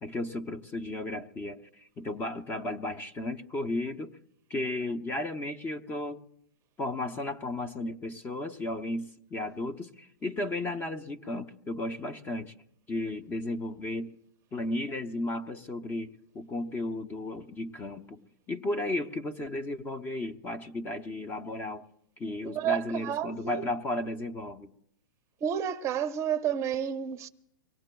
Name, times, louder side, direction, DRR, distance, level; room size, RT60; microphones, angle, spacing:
voice 1, 0.0-4.2 4.5-6.2 6.8-12.5 12.9-14.1 14.5-18.2 18.5-21.8 22.2-24.7, left 2 dB, 15° left, 0.7 m, -34 dB
voice 2, 22.5-23.6 25.4-27.3, right 9 dB, 25° right, 0.6 m, -30 dB
24.0 x 18.0 x 2.3 m
hypercardioid pair, 135°, 12 cm